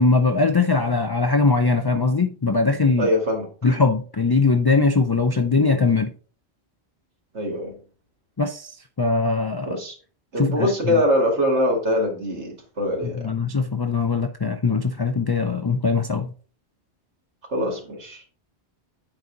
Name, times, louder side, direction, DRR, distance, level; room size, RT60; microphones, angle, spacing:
voice 1, 0.0-3.1 3.6-6.1 8.4-9.8 10.4-11.0 13.0-16.3, left 4 dB, 30° left, 0.4 m, -21 dB
voice 2, 3.0-3.5 7.3-7.8 9.7-10.0 10.3-13.3 17.5-18.2, equal, 85° right, 2.5 m, -23 dB
9.0 x 5.3 x 3.9 m
omnidirectional pair, 1.1 m